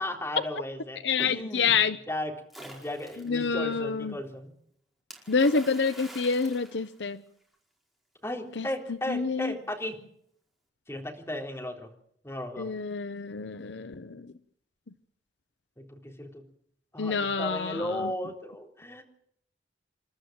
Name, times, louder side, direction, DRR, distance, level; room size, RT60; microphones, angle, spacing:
voice 1, 0.0-1.7 2.1-2.3 2.6-4.5 8.2-10.0 10.9-11.9 12.2-12.7 15.8-16.4 16.9-19.0, left 1 dB, 15° left, 1 dB, 3.9 m, -35 dB
voice 2, 1.0-2.0 3.2-4.1 5.3-7.2 8.6-8.7 9.1-9.5 12.6-14.2 17.0-18.1, left 5 dB, 70° left, 12 dB, 0.8 m, -27 dB
Splash splatter, 2.5-3.4 5.1-7.5, right 1 dB, ahead, 5.0 m, -47 dB
28.5 x 13.0 x 7.7 m, 0.69 s
head